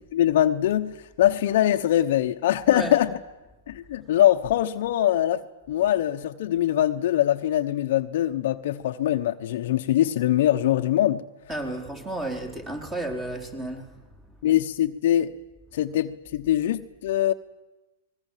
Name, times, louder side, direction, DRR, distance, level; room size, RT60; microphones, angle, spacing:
voice 1, 0.1-3.2 3.7-5.4 5.7-11.2 14.4-15.3 15.7-17.3, left 12 dB, 60° left, 8 dB, 1.0 m, -23 dB
voice 2, 11.5-13.9, right 1 dB, 15° right, 4 dB, 4.1 m, -32 dB
25.0 x 20.5 x 7.5 m, 1.1 s
hypercardioid pair, 145°, 0 cm